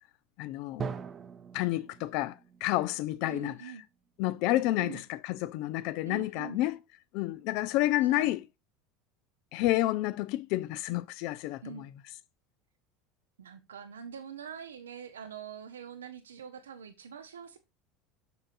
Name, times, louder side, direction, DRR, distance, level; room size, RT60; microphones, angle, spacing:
voice 1, 0.4-0.9 1.5-3.5 4.2-6.8 7.1-8.4 9.5-11.8, left 16 dB, 60° left, 0.6 m, -29 dB
Drum, 0.8-4.5, right 6 dB, 35° right, 0.7 m, -43 dB
voice 2, 3.3-3.8 4.8-5.0 6.0-6.6 8.1-8.3 11.6-11.9 13.4-17.6, right 8 dB, 85° right, 0.7 m, -44 dB
6.9 x 6.2 x 2.6 m
hypercardioid pair, 75°, 0 cm